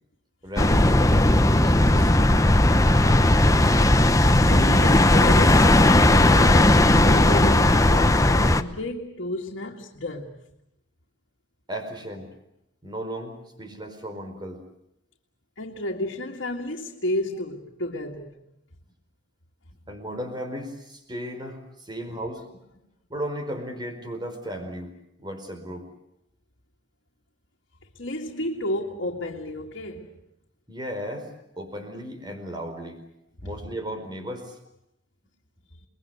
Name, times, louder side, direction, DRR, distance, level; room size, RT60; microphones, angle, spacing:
voice 1, 0.4-1.2 1.6-2.2 11.7-12.3 12.8-14.6 19.9-22.4 23.1-24.9 25.2-25.9 30.7-31.3 31.6-33.0 33.4-34.6, equal, 25° right, 4.6 m, -35 dB
sound 1, 0.6-8.6, left 1 dB, 15° left, 0.9 m, -17 dB
voice 2, 3.6-10.4 15.6-18.4 28.0-30.2, left 1 dB, 70° left, 2.1 m, -31 dB
29.5 x 21.5 x 8.1 m
head